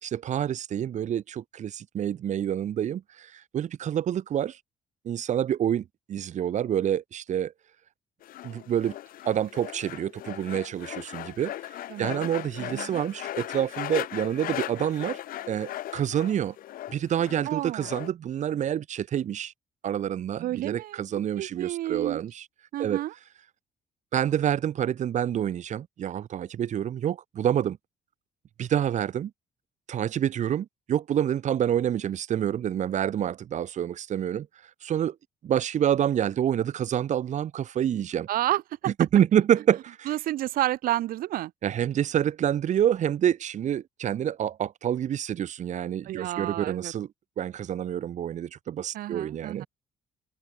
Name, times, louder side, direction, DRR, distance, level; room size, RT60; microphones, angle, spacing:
voice 1, 0.0-4.6 5.0-7.5 8.4-8.9 9.2-11.5 12.0-15.2 15.5-16.6 16.9-19.5 19.8-22.4 22.8-23.0 24.1-27.8 28.6-29.3 29.9-34.5 34.8-35.1 35.4-38.3 39.0-40.1 41.6-47.1 47.4-49.7, right 10 dB, 55° right, 3.1 m, -27 dB
sound 1, 8.2-18.1, left 13 dB, 75° left, 2.3 m, -38 dB
voice 2, 11.9-12.3 12.6-13.0 17.4-17.9 20.4-21.0 21.4-22.2 22.7-23.1 38.3-38.9 40.1-41.5 46.1-46.9 48.9-49.6, right 14 dB, 75° right, 1.2 m, -30 dB
cardioid pair, 140°, 15 cm